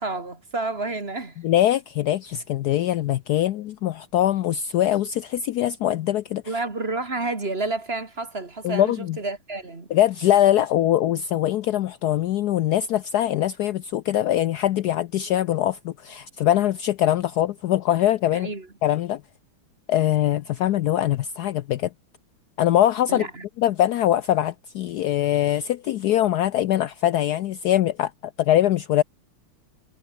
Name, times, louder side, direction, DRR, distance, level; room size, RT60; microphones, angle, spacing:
voice 1, 0.0-1.4 6.5-9.9 18.3-18.7 23.1-23.4, right 3 dB, 25° right, 2.7 m, -30 dB
voice 2, 1.4-6.5 8.6-9.2 9.9-18.5 18.8-19.2 19.9-21.9 22.6-23.3 23.6-28.1 28.4-29.0, left 12 dB, 85° left, 0.8 m, -22 dB
omnidirectional pair, 2.4 m